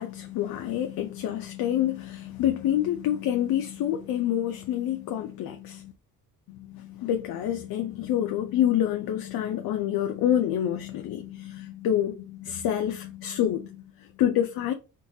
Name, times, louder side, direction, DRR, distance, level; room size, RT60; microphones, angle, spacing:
voice 1, 0.0-5.9 6.5-14.7, left 11 dB, 80° left, 0.5 m, -27 dB
3.7 x 2.3 x 2.6 m
cardioid pair, 160°, 35 cm